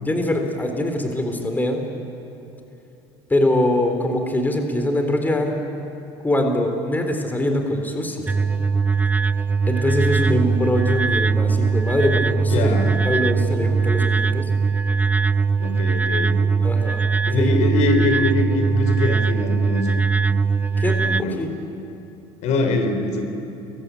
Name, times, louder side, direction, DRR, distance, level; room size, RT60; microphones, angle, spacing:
voice 1, 0.1-1.8 3.3-5.6 6.2-8.3 9.7-12.8 13.0-14.5 16.6-17.1 17.4-17.5 20.8-21.5, left 1 dB, 15° left, 4 dB, 3.7 m, -23 dB
sound 1, 8.3-21.2, right 5 dB, 10° right, 0.5 m, -20 dB
voice 2, 10.0-10.5 12.5-13.0 15.6-16.4 17.3-20.0 21.0-21.5 22.4-23.2, left 3 dB, 60° left, 6 dB, 4.1 m, -23 dB
29.5 x 22.0 x 8.5 m, 2.8 s
supercardioid pair, 100°, 13 cm